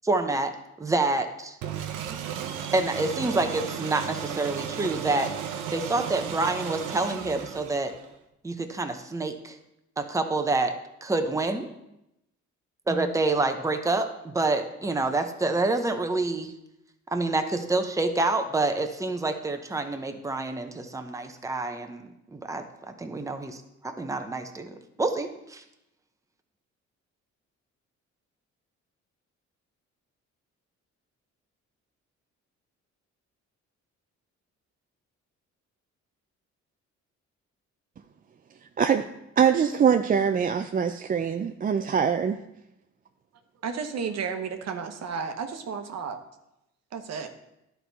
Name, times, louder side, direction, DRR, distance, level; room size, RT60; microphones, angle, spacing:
voice 1, 0.0-0.5 0.8-1.6 2.7-5.3 5.7-7.9 8.4-9.6 10.0-10.7 11.0-11.7 12.9-16.5 17.1-22.0 22.3-25.6, right 2 dB, 10° right, 6 dB, 0.7 m, -27 dB
sound 1, 1.6-8.1, right 8 dB, 85° right, 0.8 m, -34 dB
voice 2, 39.4-42.4, right 7 dB, 30° right, 7 dB, 0.4 m, -23 dB
voice 3, 43.6-46.2 46.9-47.3, right 6 dB, 60° right, 7 dB, 1.0 m, -32 dB
11.0 x 4.6 x 4.0 m, 0.86 s
cardioid pair, 90°, 30 cm